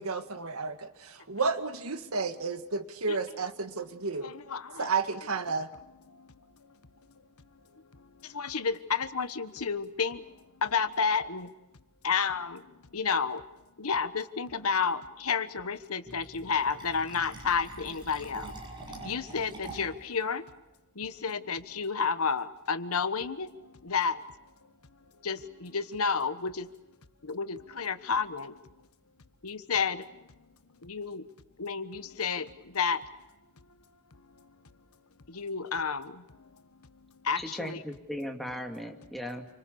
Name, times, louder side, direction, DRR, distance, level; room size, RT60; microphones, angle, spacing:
voice 1, 0.0-4.3 4.8-5.7, right 4 dB, 75° right, 9 dB, 1.8 m, -32 dB
voice 2, 4.2-4.9 8.3-10.2 10.6-11.5 12.0-12.6 12.9-13.4 13.8-18.5 19.0-20.4 21.0-23.5 23.8-24.2 25.2-26.7 27.2-28.5 29.4-30.0 30.8-31.2 31.6-32.5 32.7-33.0 35.3-36.2 37.2-37.8, left 5 dB, 90° left, 12 dB, 1.3 m, -30 dB
Fill (with liquid), 16.1-20.1, right 2 dB, 20° right, 6.9 m, -45 dB
voice 3, 37.4-39.5, equal, ahead, 3 dB, 2.4 m, -37 dB
28.5 x 25.0 x 7.0 m, 1.0 s
head